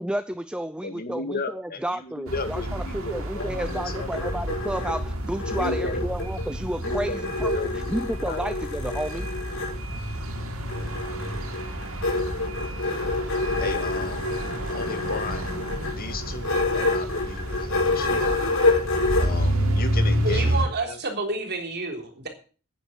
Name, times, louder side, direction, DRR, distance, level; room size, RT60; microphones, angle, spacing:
voice 1, 0.0-9.3 19.2-19.3, right 1 dB, 5° right, 11 dB, 0.5 m, -31 dB
voice 2, 0.8-4.3 5.6-6.1 6.8-8.4 13.6-14.3 14.7-15.6 15.9-18.4 19.2-21.0, left 3 dB, 45° left, 7 dB, 2.1 m, -34 dB
sound 1, 2.3-20.7, equal, 85° right, 2.5 m, -30 dB
sound 2, 3.1-6.5 6.8-9.8 10.7-19.3, left 3 dB, 80° left, 5.9 m, -28 dB
voice 3, 20.2-22.3, right 3 dB, 55° right, 4 dB, 3.5 m, -29 dB
10.0 x 9.2 x 7.7 m, 0.39 s
head